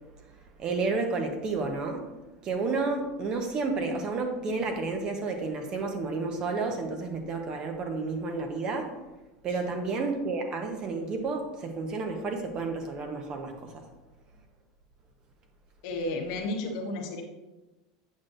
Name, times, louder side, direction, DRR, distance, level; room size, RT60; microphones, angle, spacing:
voice 1, 0.6-2.1 2.4-8.9 9.4-13.8, right 3 dB, 35° right, 4 dB, 1.0 m, -31 dB
voice 2, 15.8-17.2, left 2 dB, 65° left, 1 dB, 1.3 m, -33 dB
8.5 x 5.9 x 2.6 m, 1.1 s
supercardioid pair, 130°, 2 cm